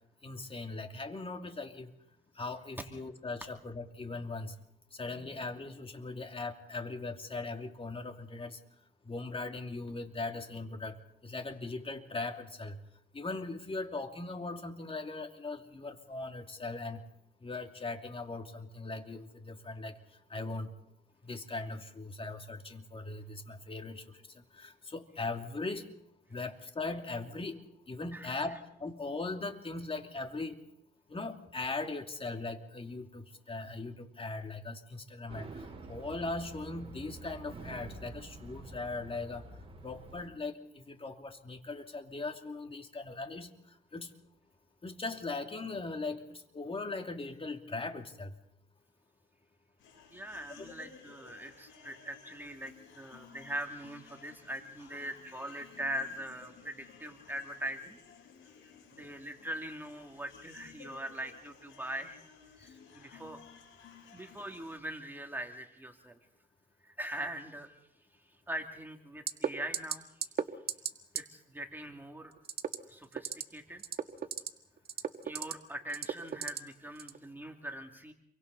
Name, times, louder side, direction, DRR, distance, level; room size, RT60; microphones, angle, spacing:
voice 1, 0.2-1.9 2.3-4.5 4.9-8.6 9.0-12.8 13.1-17.0 17.4-20.0 20.3-20.7 21.2-25.9 26.3-30.6 31.1-39.4 39.8-44.1 44.8-48.4 50.6-50.7 62.6-62.7, left 3 dB, 30° left, 4 dB, 2.8 m, -39 dB
sound 1, 35.3-40.3, right 3 dB, 30° right, 5.4 m, -48 dB
sound 2, 49.8-64.8, left 6 dB, 80° left, 7.6 m, -56 dB
voice 2, 50.1-58.0 58.9-62.2 62.6-63.4 64.1-66.2 66.8-67.7 68.5-70.1 71.1-72.3 72.9-73.8 75.2-78.1, right 1 dB, 10° right, 3 dB, 2.7 m, -41 dB
sound 3, 69.3-69.5 69.7-70.0 70.2-70.4 70.7-70.9 71.2-71.3 72.5-72.8 73.1-73.4 73.8-74.5 74.9-75.5 75.9-76.6 77.0-77.2, right 8 dB, 50° right, 1.8 m, -33 dB
29.0 x 24.0 x 4.1 m, 0.75 s
cardioid pair, 90°, 20 cm